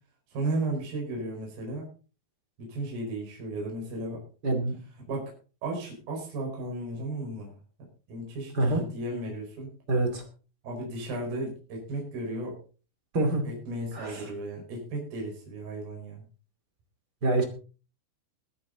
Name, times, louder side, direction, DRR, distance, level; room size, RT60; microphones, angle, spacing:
voice 1, 0.3-1.9 2.6-4.3 5.1-5.3 5.6-7.6 8.1-9.7 10.6-12.6 13.4-16.2, right 2 dB, 50° right, 0 dB, 6.4 m, -34 dB
voice 2, 4.4-4.8 8.5-8.8 9.9-10.2 13.1-13.4 13.9-14.2 17.2-17.4, right 2 dB, 30° right, 4 dB, 2.2 m, -25 dB
22.0 x 9.1 x 4.0 m, 0.37 s
omnidirectional pair, 5.6 m